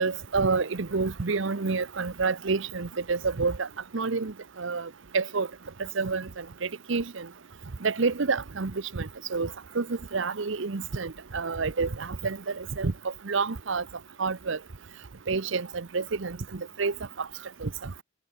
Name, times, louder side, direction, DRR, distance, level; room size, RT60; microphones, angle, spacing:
voice 1, 0.0-3.7 3.9-5.5 6.0-7.3 7.8-9.5 9.7-12.9 13.2-13.8 14.2-14.6 15.3-17.3 17.6-17.9, right 4 dB, 65° right, 0.8 m, -29 dB
head